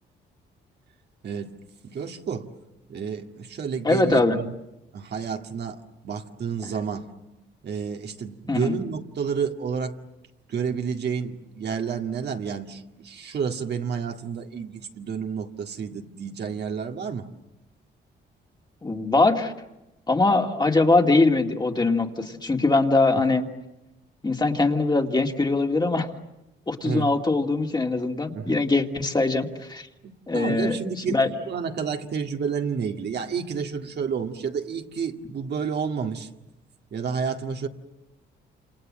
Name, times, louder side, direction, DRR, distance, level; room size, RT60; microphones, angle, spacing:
voice 1, 1.8-2.5 2.9-4.5 4.9-7.1 7.6-9.9 10.5-17.3 26.8-27.1 28.3-28.6 30.0-36.3 36.9-37.7, right 6 dB, 55° right, 4 dB, 2.0 m, -30 dB
voice 2, 3.8-4.4 8.5-8.7 18.8-19.5 20.1-23.5 24.2-26.1 26.7-29.9 30.3-30.8 31.1-31.3, left 3 dB, 20° left, 3 dB, 2.4 m, -22 dB
28.0 x 27.5 x 7.6 m, 0.95 s
cardioid pair, 90°, 20 cm